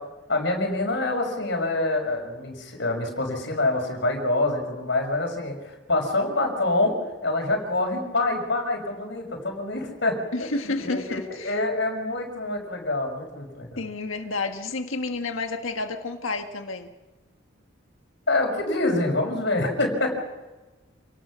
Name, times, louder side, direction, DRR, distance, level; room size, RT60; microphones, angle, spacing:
voice 1, 0.3-10.5 10.8-13.8 18.3-20.2, left 2 dB, 60° left, 2 dB, 5.9 m, -26 dB
voice 2, 10.3-11.6 13.8-16.9, left 3 dB, 90° left, 5 dB, 1.5 m, -30 dB
28.5 x 19.0 x 6.2 m, 1.2 s
head